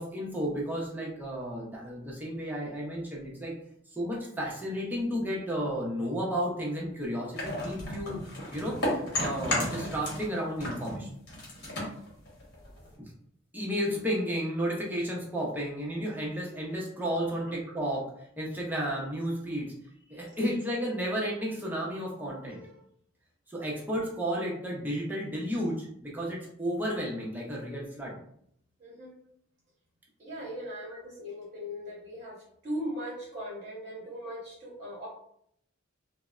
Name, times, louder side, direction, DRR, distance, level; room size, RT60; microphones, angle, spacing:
voice 1, 0.0-3.5 3.9-8.2 8.5-8.8 9.2-11.1 13.5-18.0 18.4-19.7 20.1-22.8 23.5-28.2 30.9-31.0, equal, 10° right, -3 dB, 0.6 m, -32 dB
sound 1, 7.4-10.3 10.6-13.0, left 1 dB, 55° left, 1.0 m, -33 dB
voice 2, 28.8-29.1 30.2-35.1, equal, 35° right, -5 dB, 1.0 m, -39 dB
3.3 x 2.0 x 2.4 m, 0.69 s
head